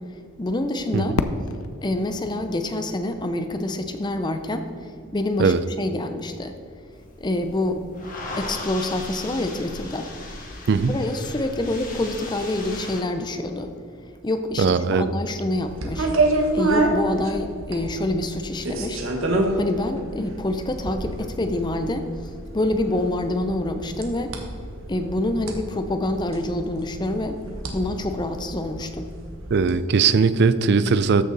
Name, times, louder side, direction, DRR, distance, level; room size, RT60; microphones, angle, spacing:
voice 1, 0.4-1.1 1.8-6.5 7.2-7.9 8.4-10.1 10.9-13.7 14.2-16.1 16.5-19.0 19.5-22.1 22.5-24.4 24.9-27.4 27.7-29.1, left 1 dB, 20° left, 8 dB, 0.5 m, -26 dB
Fireworks, 1.2-4.0, left 3 dB, 85° left, 0.6 m, -31 dB
sound 1, 6.9-13.0, left 2 dB, 40° left, 1.7 m, -37 dB
voice 2, 10.7-11.0 14.6-15.1 29.5-31.2, right 5 dB, 55° right, 14 dB, 0.4 m, -19 dB
sound 2, 15.6-29.7, right 2 dB, 75° right, 1.4 m, -28 dB
14.0 x 6.5 x 4.0 m, 2.4 s
head